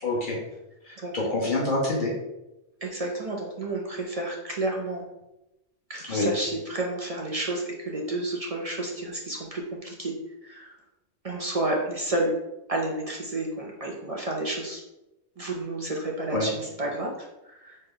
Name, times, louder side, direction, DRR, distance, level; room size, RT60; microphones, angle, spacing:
voice 1, 0.0-0.4 0.8-2.1 6.1-6.3 16.3-16.5, left 2 dB, 45° left, -5 dB, 0.9 m, -26 dB
voice 2, 2.8-5.0 5.9-10.1 10.4-10.7 11.2-12.3 12.7-14.8 15.4-17.8, right 2 dB, 45° right, -1 dB, 0.5 m, -31 dB
4.0 x 3.2 x 3.7 m, 0.95 s
omnidirectional pair, 1.3 m